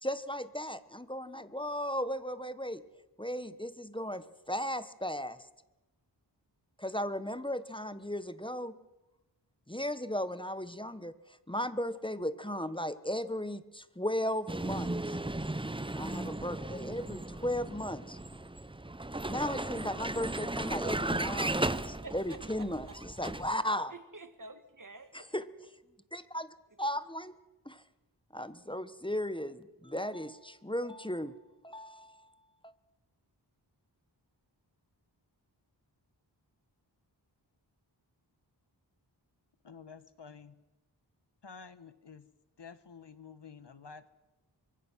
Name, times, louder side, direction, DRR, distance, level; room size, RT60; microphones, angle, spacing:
voice 1, 0.0-2.8 3.2-5.5 6.8-8.7 9.7-15.2 15.9-18.2 19.3-23.9 25.1-25.5 26.1-27.4 27.6-27.8 28.3-32.7, left 1 dB, 10° left, 13 dB, 1.0 m, -36 dB
Vehicle, 14.5-23.5, right 2 dB, 10° right, 0.7 m, -36 dB
voice 2, 22.0-23.0 23.9-25.2, right 3 dB, 45° right, 10 dB, 1.8 m, -49 dB
voice 3, 39.6-40.6 41.4-42.3 42.6-44.1, left 5 dB, 70° left, 13 dB, 1.3 m, -50 dB
24.5 x 22.5 x 6.2 m, 1.0 s
wide cardioid pair, 60°, 44 cm